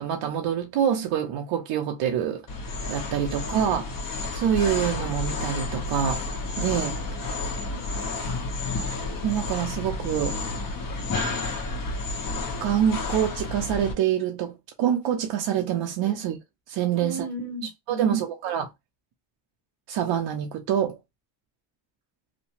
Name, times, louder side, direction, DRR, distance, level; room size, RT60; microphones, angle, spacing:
voice 1, 0.0-2.4 2.9-3.9 4.3-6.2 6.6-7.0 9.2-10.4 12.6-16.4 16.7-17.3 17.9-18.7 19.9-21.0, right 9 dB, 80° right, 0.7 m, -26 dB
sound 1, 2.5-13.9, left 3 dB, 45° left, 1.2 m, -31 dB
voice 2, 7.3-7.9 16.0-16.2 16.9-18.3, right 1 dB, 5° left, 0.9 m, -36 dB
3.0 x 2.1 x 2.9 m
cardioid pair, 110°, 45 cm